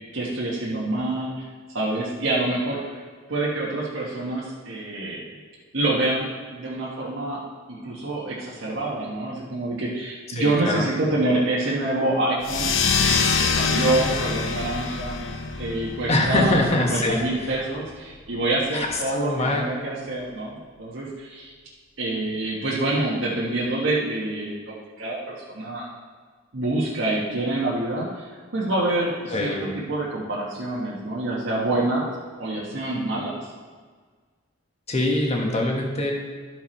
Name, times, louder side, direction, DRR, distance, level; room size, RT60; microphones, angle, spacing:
voice 1, 0.1-1.5 1.7-3.0 3.3-5.2 5.7-7.4 7.7-12.7 13.0-15.2 15.6-21.5 22.0-25.9 26.5-32.1 32.4-33.3, right 2 dB, 90° right, -6 dB, 1.4 m, -26 dB
voice 2, 10.3-10.9 16.1-17.5 18.7-19.7 29.3-29.7 34.9-36.1, left 1 dB, 35° left, 0 dB, 1.4 m, -23 dB
sound 1, 12.4-17.5, left 5 dB, 85° left, 0.7 m, -25 dB
12.5 x 4.7 x 4.4 m, 1.5 s
head